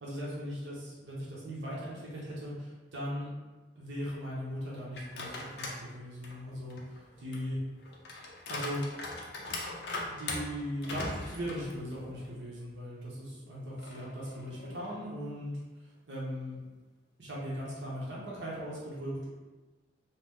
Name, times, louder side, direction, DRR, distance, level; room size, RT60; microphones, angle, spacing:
voice 1, 0.0-3.3 3.8-7.6 8.5-8.8 10.2-15.6 16.1-16.6 17.2-19.3, equal, 75° right, -6 dB, 0.9 m, -39 dB
sound 1, 4.9-5.8 6.2-12.3 12.7-12.8 13.8-15.3, left 2 dB, 65° left, 0.5 m, -41 dB
2.8 x 2.1 x 3.5 m, 1.2 s
head